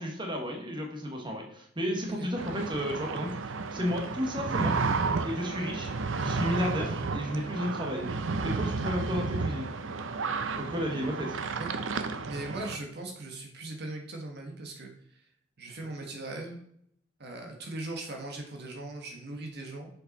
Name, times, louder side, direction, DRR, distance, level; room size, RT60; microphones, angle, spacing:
voice 1, 0.0-3.3 3.7-4.7 5.2-5.9 6.2-8.1 8.4-9.7 10.6-11.4, equal, 25° right, 1 dB, 1.4 m, -32 dB
sound 1, 2.4-12.8, right 4 dB, 70° right, 0.6 m, -32 dB
voice 2, 12.2-15.2 15.6-16.6 17.2-19.9, right 2 dB, 55° right, 2 dB, 1.3 m, -39 dB
7.0 x 5.3 x 4.1 m, 0.68 s
head